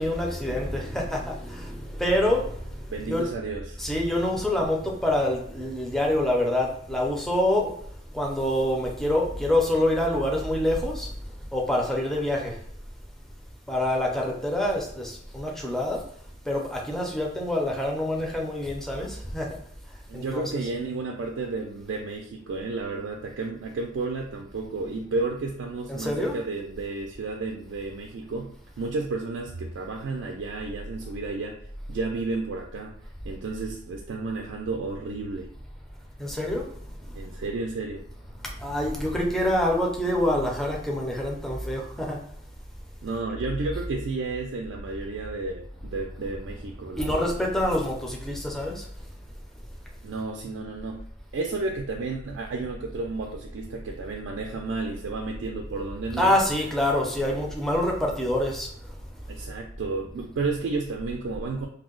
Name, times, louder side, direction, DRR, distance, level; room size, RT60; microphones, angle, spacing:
voice 1, 0.0-3.3 3.8-7.7 8.1-11.1 11.5-12.5 13.7-16.0 16.5-19.5 20.1-20.7 25.9-26.4 36.2-36.6 38.6-42.2 47.0-48.9 56.1-58.7, left 1 dB, ahead, -2 dB, 0.5 m, -26 dB
voice 2, 2.9-3.8 20.1-31.6 31.9-33.0 33.2-35.5 37.2-38.0 43.0-47.3 50.0-51.0 51.3-56.3 59.3-61.7, right 3 dB, 70° right, 1 dB, 0.4 m, -32 dB
2.7 x 2.0 x 3.7 m, 0.66 s
head